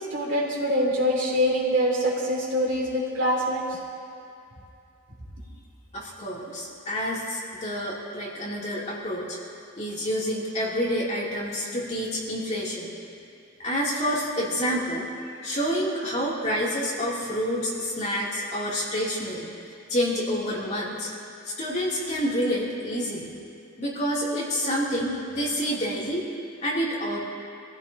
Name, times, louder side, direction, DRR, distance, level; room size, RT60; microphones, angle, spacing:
voice 1, 0.1-3.7, equal, 65° right, -4 dB, 3.1 m, -24 dB
voice 2, 5.9-9.4 9.8-12.9 13.6-15.1 15.4-19.5 19.9-21.1 21.4-23.3 23.8-26.3 26.6-27.2, equal, 35° left, -6 dB, 2.9 m, -28 dB
24.5 x 15.0 x 2.9 m, 2.6 s
head